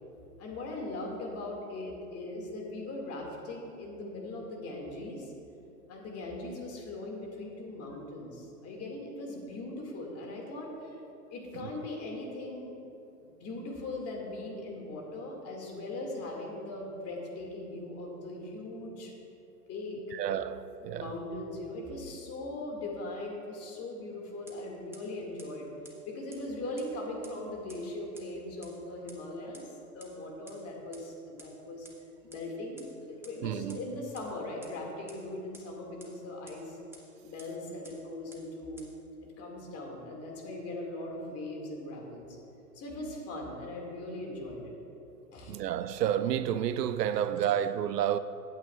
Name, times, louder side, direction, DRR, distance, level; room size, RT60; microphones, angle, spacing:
voice 1, 0.4-5.3 5.9-11.0 11.3-12.8 13.2-19.1 19.7-20.0 20.9-25.7 26.0-29.7 29.9-31.9 32.2-36.8 37.2-38.9 39.2-42.3 42.7-44.7 45.3-45.6 47.4-47.5, left 2 dB, 30° left, 2.1 m, -40 dB
voice 2, 20.1-21.1 33.4-33.8 45.5-48.2, right 10 dB, 85° right, 0.5 m, -30 dB
sound 1, 24.5-24.6 24.9-25.0 25.4-25.5 25.8-25.9 26.3-26.4 26.8-26.9 27.2-27.3 27.7-27.8 28.2-28.3 28.6-28.7 29.1-29.2 29.5-29.6 30.0-30.1 30.5-30.6 30.9-31.0 31.4-31.5 31.8-31.9 32.3-32.4 32.8-32.9 33.2-33.3 33.7-33.8 34.1-34.2 34.6-34.7 35.1-35.2 35.5-35.6 36.0-36.1 36.5-36.6 36.9-37.0 37.4-37.5 37.8-37.9 38.3-38.4 38.8-38.9, right 2 dB, 5° right, 1.3 m, -50 dB
15.5 x 8.8 x 2.4 m
hypercardioid pair, 110°, 47 cm